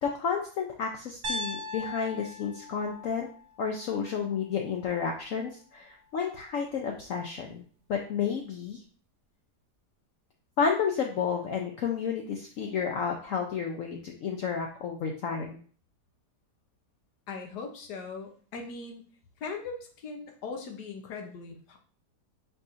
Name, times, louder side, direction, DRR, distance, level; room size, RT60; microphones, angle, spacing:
voice 1, 0.0-3.3 3.6-7.6 7.9-8.8 10.6-15.6, left 6 dB, 65° left, 1 dB, 0.9 m, -31 dB
Piano, 1.2-5.3, left 1 dB, 80° right, 1.3 m, -40 dB
voice 2, 17.3-19.0 19.4-21.8, left 4 dB, 85° left, 3 dB, 1.4 m, -39 dB
4.6 x 4.2 x 2.5 m, 0.43 s
omnidirectional pair, 1.7 m